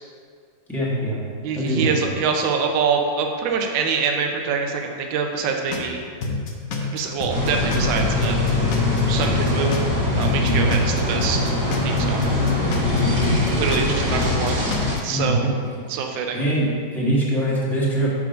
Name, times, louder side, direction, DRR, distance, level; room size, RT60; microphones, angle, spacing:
voice 1, 0.7-1.2 1.6-2.0 10.4-10.7 13.0-13.4 15.1-15.5 16.3-18.1, right 1 dB, ahead, -7 dB, 0.9 m, -23 dB
voice 2, 1.4-6.0 6.9-8.4 9.1-9.8 10.2-11.5 11.8-12.2 13.6-14.6 15.0-15.5 15.9-16.4, right 5 dB, 80° right, 3 dB, 1.4 m, -25 dB
sound 1, 5.7-5.9 6.2-9.9 10.2-13.9 14.2-15.1, left 3 dB, 65° left, 0.9 m, -28 dB
sound 2, 7.3-15.0, left 2 dB, 60° right, 1.6 m, -22 dB
6.0 x 3.7 x 5.1 m, 2.1 s
omnidirectional pair, 2.1 m